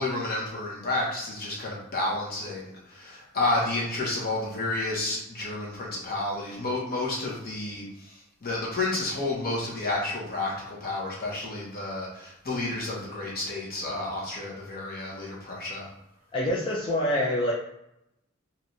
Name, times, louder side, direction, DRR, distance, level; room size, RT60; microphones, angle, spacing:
voice 1, 0.0-15.9, left 2 dB, 50° left, -4 dB, 1.0 m, -31 dB
voice 2, 16.3-17.5, left 1 dB, 25° left, -5 dB, 0.5 m, -26 dB
3.2 x 2.6 x 2.7 m, 0.81 s
head